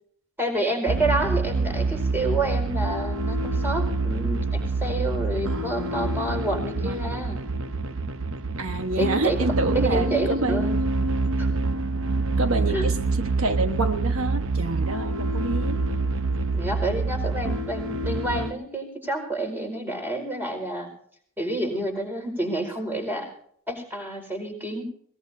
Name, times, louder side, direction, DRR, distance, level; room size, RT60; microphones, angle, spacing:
voice 1, 0.4-7.4 9.0-9.4 9.7-10.8 11.4-11.5 12.7-12.8 16.5-20.9 21.4-23.3 23.7-24.8, right 1 dB, 10° right, 2 dB, 4.9 m, -28 dB
sound 1, 0.9-18.5, right 3 dB, 65° right, 0.8 m, -26 dB
voice 2, 5.5-6.1 6.8-7.0 8.6-10.7 12.4-15.8, right 2 dB, 80° right, 7 dB, 1.3 m, -28 dB
21.5 x 20.0 x 2.7 m, 0.63 s
head